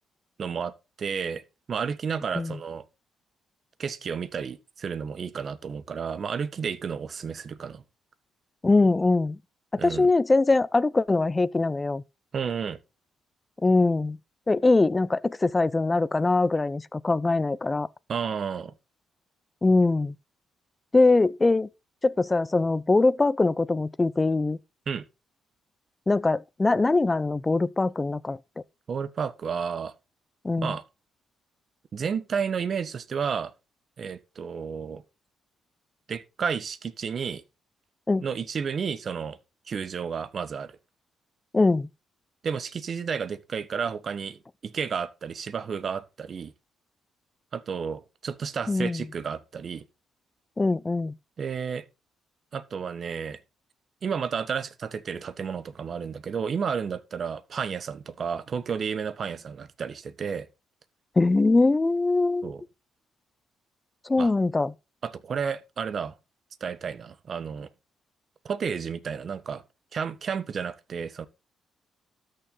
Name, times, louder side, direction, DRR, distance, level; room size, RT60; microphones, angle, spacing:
voice 1, 0.4-0.7 1.0-1.4 1.7-2.8 3.8-7.8 9.8-10.1 12.3-12.8 18.1-18.7 24.9-25.0 28.9-29.9 30.6-30.8 31.9-33.5 34.0-35.0 36.1-37.4 38.2-39.4 39.7-40.7 42.4-46.5 47.5-49.8 51.4-51.8 52.5-53.4 54.0-60.5 62.4-62.6 64.2-64.3 65.0-66.1 66.6-67.7 68.4-69.6 69.9-71.3, right 6 dB, 50° right, 1.3 m, -31 dB
voice 2, 8.6-9.4 9.7-12.0 13.6-14.2 14.5-17.9 19.6-20.1 20.9-21.7 22.0-24.6 26.1-28.4 30.4-30.7 38.1-38.2 41.5-41.9 48.7-49.0 50.6-51.1 61.2-62.5 64.1-64.7, left 3 dB, 20° left, 0.6 m, -22 dB
13.0 x 6.5 x 3.9 m
cardioid pair, 90°, 0 cm